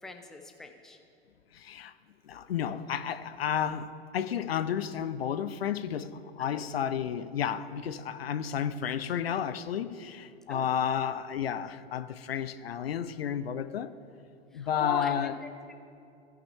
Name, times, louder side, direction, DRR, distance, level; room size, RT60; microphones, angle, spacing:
voice 1, 0.0-1.0 6.4-6.7 10.5-10.7 14.5-15.7, left 3 dB, ahead, 5 dB, 0.5 m, -42 dB
voice 2, 1.5-1.9 2.2-13.9 14.5-15.3, left 8 dB, 70° left, 13 dB, 0.5 m, -32 dB
17.0 x 5.8 x 3.2 m, 2.6 s
figure-of-eight pair, 95°, 31 cm